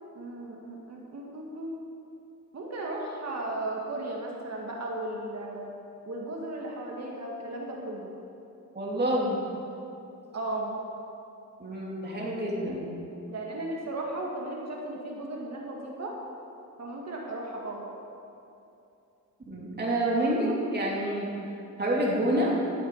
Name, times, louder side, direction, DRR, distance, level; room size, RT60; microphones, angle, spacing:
voice 1, 0.1-1.8 2.5-5.7 6.0-8.1 10.3-10.8 13.3-16.2 16.8-17.9, right 2 dB, 55° right, -1 dB, 1.9 m, -35 dB
voice 2, 8.7-9.4 11.6-12.8 19.5-21.3 21.8-22.6, right 1 dB, 30° right, -4 dB, 2.8 m, -27 dB
12.0 x 8.0 x 5.5 m, 2.7 s
cardioid pair, 105°, 31 cm